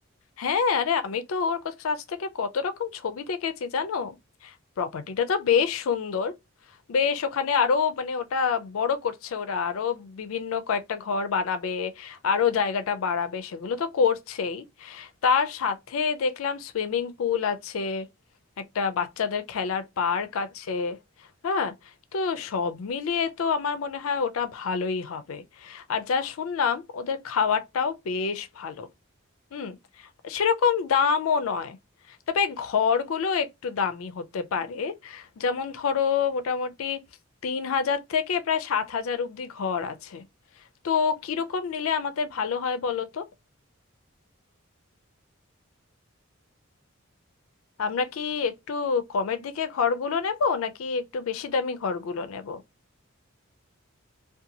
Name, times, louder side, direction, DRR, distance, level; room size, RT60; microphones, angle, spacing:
voice 1, 0.4-4.2 4.4-6.3 6.9-18.1 18.7-21.0 21.4-21.7 22.1-28.9 29.5-31.8 32.3-37.0 37.4-40.2 40.8-43.3 47.8-52.6, left 6 dB, 75° left, 0.4 m, -27 dB
2.7 x 2.2 x 2.6 m
head